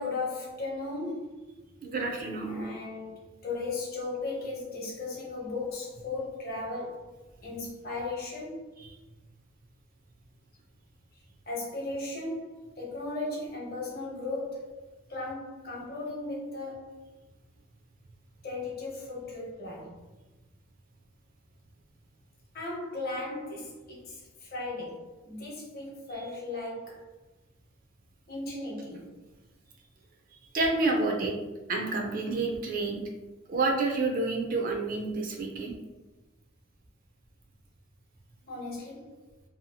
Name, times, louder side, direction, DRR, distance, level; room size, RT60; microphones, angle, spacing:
voice 1, 0.0-1.5 2.4-7.1 7.4-8.7 11.5-14.8 15.1-17.0 18.4-19.9 22.5-27.0 28.3-29.2 38.5-39.2, left 2 dB, 45° left, -3 dB, 0.8 m, -36 dB
voice 2, 1.8-2.6 8.8-8.9 30.5-31.3 31.7-33.0 33.5-35.7, right 3 dB, 40° right, 2 dB, 0.4 m, -29 dB
2.7 x 2.3 x 2.6 m, 1.1 s
head